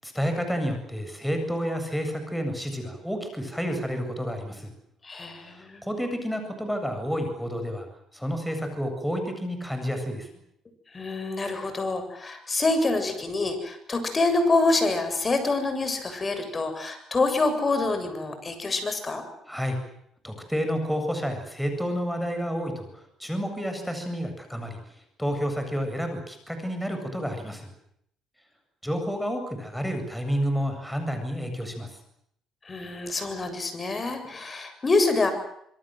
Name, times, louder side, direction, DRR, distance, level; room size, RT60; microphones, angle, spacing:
voice 1, 0.0-4.7 5.8-7.9 8.1-10.3 19.5-19.8 20.2-22.9 23.2-24.8 25.2-27.7 28.8-31.9, equal, ahead, 6 dB, 7.9 m, -30 dB
voice 2, 5.0-5.8 10.9-19.2 32.7-35.3, left 3 dB, 30° left, 8 dB, 7.7 m, -26 dB
26.5 x 23.5 x 7.9 m, 0.72 s
cardioid pair, 95°, 0 cm